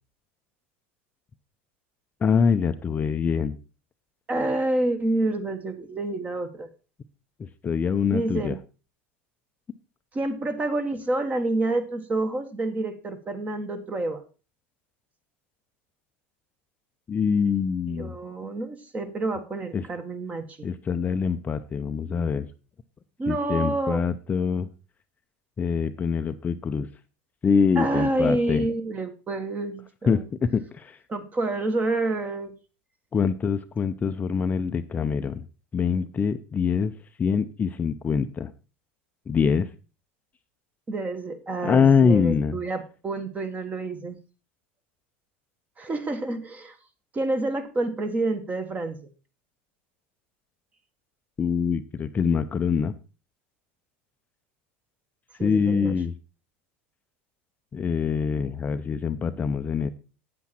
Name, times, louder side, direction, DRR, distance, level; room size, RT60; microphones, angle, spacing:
voice 1, 2.2-3.6 7.4-8.6 17.1-18.2 19.7-19.9 20.6-22.5 23.3-24.7 25.6-26.9 27.4-28.7 30.1-31.0 33.1-35.4 35.7-36.9 37.2-38.5 39.3-39.7 41.6-42.6 51.4-52.9 55.4-56.1 57.7-59.9, left 6 dB, 25° left, 9 dB, 0.6 m, -24 dB
voice 2, 4.3-6.7 8.1-8.6 10.1-14.2 17.9-20.7 23.2-24.0 27.8-30.2 31.1-32.5 40.9-44.2 45.8-46.7 47.1-49.0 55.4-55.9, right 2 dB, 25° right, 9 dB, 1.5 m, -28 dB
8.5 x 8.2 x 4.3 m, 0.32 s
supercardioid pair, 105°, 6 cm